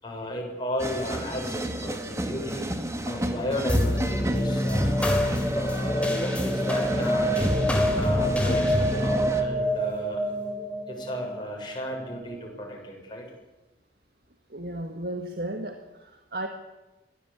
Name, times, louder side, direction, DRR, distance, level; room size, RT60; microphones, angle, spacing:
voice 1, 0.0-5.0 5.5-7.5 8.0-10.2 10.9-13.3, left 1 dB, 25° left, 0 dB, 7.2 m, -34 dB
sound 1, 0.8-9.4, right 1 dB, 15° right, 2.0 m, -32 dB
sound 2, 3.7-12.4, equal, 5° left, 3.6 m, -26 dB
voice 2, 14.5-16.5, right 1 dB, 60° right, 5 dB, 1.9 m, -34 dB
23.0 x 17.0 x 8.6 m, 1.1 s
head